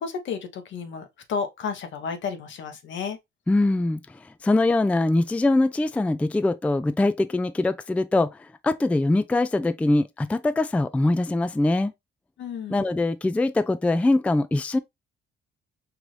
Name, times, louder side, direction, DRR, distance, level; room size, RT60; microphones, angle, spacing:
voice 1, 0.0-3.2 12.4-12.9, left 6 dB, 70° left, 1.0 m, -32 dB
voice 2, 3.5-11.9 12.7-14.8, left 2 dB, 5° left, 0.3 m, -23 dB
4.7 x 2.6 x 3.1 m
cardioid pair, 90°, 20 cm